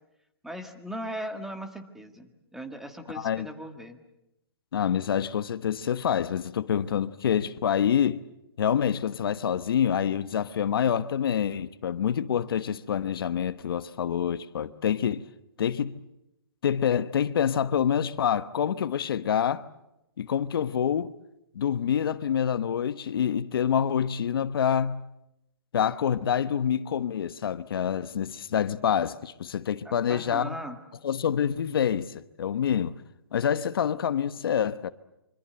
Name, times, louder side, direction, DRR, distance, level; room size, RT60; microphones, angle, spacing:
voice 1, 0.4-4.0 29.9-30.8, right 1 dB, 5° right, 1.7 m, -38 dB
voice 2, 3.1-3.5 4.7-8.2 8.6-15.3 15.6-15.9 16.6-19.7 20.2-21.1 21.5-25.0 25.7-30.5 31.0-33.0 33.3-34.9, left 8 dB, 65° left, 1.1 m, -26 dB
26.0 x 25.0 x 7.8 m
hypercardioid pair, 155°, 13 cm